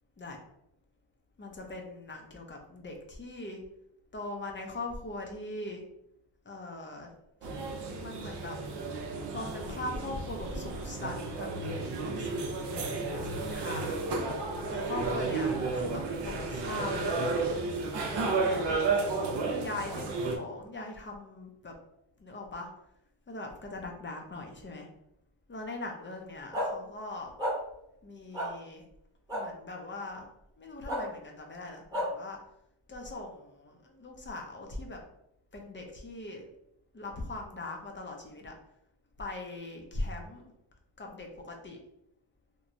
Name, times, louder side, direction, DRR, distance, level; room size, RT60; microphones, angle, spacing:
voice 1, 1.4-3.6 4.1-5.8 6.5-7.1 7.4-7.5 8.0-8.6 9.3-14.0 14.7-17.8 18.4-21.7 22.2-22.7 23.3-24.9 25.5-27.3 28.0-28.8 29.3-30.3 30.6-32.4 32.9-35.0 35.5-36.5 36.9-38.5 39.2-40.4 41.0-41.8, left 2 dB, 25° left, 2 dB, 0.5 m, -41 dB
sound 1, 7.4-20.4, right 3 dB, 60° right, 0.6 m, -32 dB
sound 2, 26.5-26.7 27.4-27.5 28.3-28.5 29.3-29.4 30.9-31.0 31.9-32.1, equal, 10° right, 0.9 m, -30 dB
3.0 x 2.2 x 2.5 m, 0.77 s
cardioid pair, 105°, 48 cm